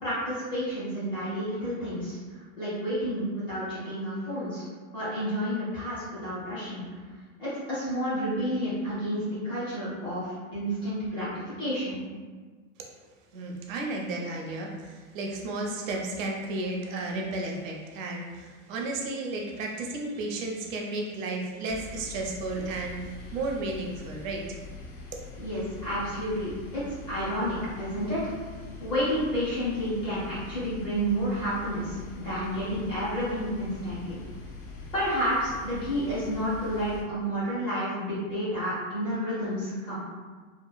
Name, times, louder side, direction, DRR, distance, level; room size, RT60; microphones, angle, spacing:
voice 1, 0.0-4.6 4.9-6.9 7.4-12.0 25.4-28.3 28.8-34.2 34.9-40.0, equal, 10° left, -12 dB, 0.5 m, -30 dB
voice 2, 13.3-24.4, right 2 dB, 65° right, 0 dB, 0.6 m, -33 dB
sound 1, 21.7-37.0, left 3 dB, 80° left, 0.7 m, -43 dB
2.9 x 2.1 x 2.2 m, 1.4 s
supercardioid pair, 175°, 43 cm